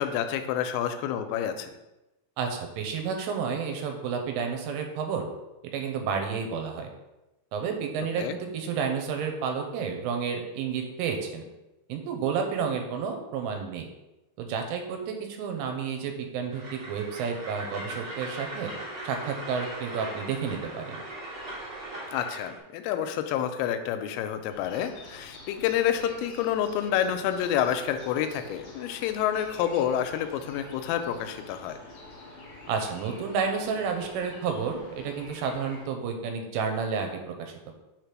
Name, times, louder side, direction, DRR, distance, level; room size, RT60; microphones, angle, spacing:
voice 1, 0.0-1.8 8.2-8.3 22.1-31.8, left 10 dB, 85° left, 8 dB, 3.2 m, -28 dB
voice 2, 2.4-5.3 5.7-6.9 7.5-11.4 11.9-13.9 14.4-18.7 19.0-21.0 32.7-37.7, right 6 dB, 85° right, 4 dB, 3.2 m, -31 dB
Train, 16.5-22.6, right 1 dB, 45° right, 1.4 m, -39 dB
sound 1, 24.5-35.8, left 1 dB, 60° left, 1.4 m, -47 dB
6.9 x 3.4 x 5.9 m, 0.99 s
omnidirectional pair, 5.7 m